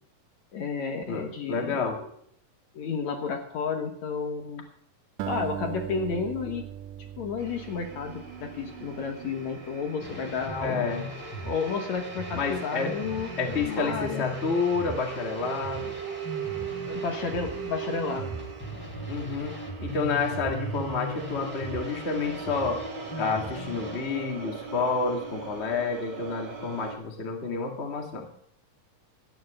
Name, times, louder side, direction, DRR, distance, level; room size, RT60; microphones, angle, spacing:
voice 1, 0.5-2.0 2.7-4.6 5.2-6.6 7.2-10.8 11.4-14.2 16.9-18.4, left 5 dB, 65° left, 4 dB, 2.4 m, -32 dB
voice 2, 1.1-2.0 10.6-11.1 12.3-13.0 13.4-16.0 19.1-22.8 23.1-28.3, left 4 dB, 25° left, 2 dB, 1.6 m, -29 dB
Acoustic guitar, 5.2-9.6, right 11 dB, 90° right, 2.4 m, -39 dB
sound 1, 7.4-27.0, right 6 dB, 60° right, 4.2 m, -40 dB
sound 2, 10.0-24.0, equal, 10° left, 2.0 m, -39 dB
13.0 x 9.5 x 6.5 m, 0.66 s
omnidirectional pair, 3.8 m